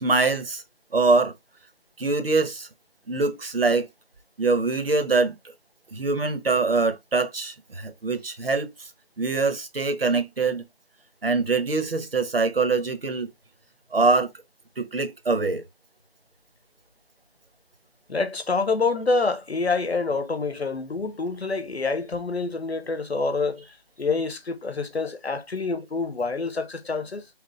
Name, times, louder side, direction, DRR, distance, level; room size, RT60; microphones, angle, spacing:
voice 1, 0.0-0.6 0.9-1.3 2.0-2.7 3.1-3.9 4.4-5.4 5.9-8.9 9.2-10.6 11.2-13.3 13.9-14.3 14.8-15.6, right 3 dB, 65° right, 0.9 m, -23 dB
voice 2, 18.1-23.7 24.0-27.3, left 3 dB, 90° left, 1.0 m, -27 dB
3.6 x 3.3 x 3.1 m
figure-of-eight pair, 175°, 31 cm